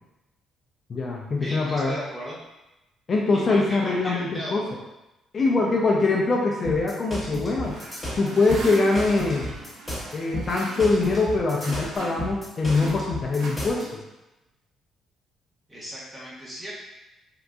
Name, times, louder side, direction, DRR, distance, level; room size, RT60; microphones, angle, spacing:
voice 1, 0.9-1.9 3.1-4.6 5.3-7.8 8.2-9.5 10.1-14.0, left 3 dB, 40° left, -2 dB, 0.4 m, -23 dB
voice 2, 1.4-2.4 3.3-4.6 5.4-5.7 15.7-16.7, equal, 15° right, -6 dB, 1.0 m, -36 dB
sound 1, 6.6-13.8, left 1 dB, 15° left, 1.2 m, -33 dB
sound 2, 7.6-12.3 12.6-14.1, right 2 dB, 80° right, 0.6 m, -39 dB
3.7 x 2.5 x 2.3 m, 0.96 s
cardioid pair, 115°, 0 cm